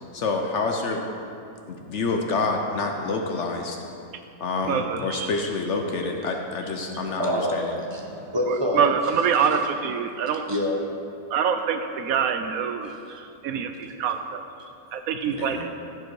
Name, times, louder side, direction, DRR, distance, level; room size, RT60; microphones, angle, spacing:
voice 1, 0.1-1.1 1.7-3.8 4.4-7.7 15.3-15.6, left 3 dB, 60° left, 3 dB, 0.9 m, -27 dB
voice 2, 4.7-5.3 8.5-10.4 11.3-14.4 14.9-15.7, right 7 dB, 75° right, 7 dB, 1.0 m, -25 dB
voice 3, 7.2-8.9 10.5-10.8, left 1 dB, 20° right, 0 dB, 0.8 m, -26 dB
14.5 x 5.1 x 4.5 m, 2.6 s
omnidirectional pair, 1.6 m